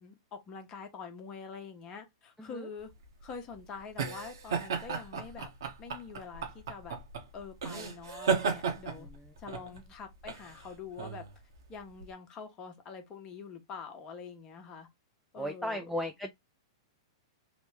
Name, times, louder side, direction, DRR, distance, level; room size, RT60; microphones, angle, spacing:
voice 1, 0.0-2.9 3.2-5.5 5.8-7.0 7.3-9.1 9.4-11.2 11.7-14.9 15.3-15.8, left 5 dB, 30° left, 0.9 m, -45 dB
sound 1, 2.9-12.1, right 6 dB, 70° right, 0.9 m, -35 dB
voice 2, 9.0-9.3 15.3-16.3, equal, ahead, 0.4 m, -36 dB
3.0 x 2.1 x 3.3 m
hypercardioid pair, 110°, 2 cm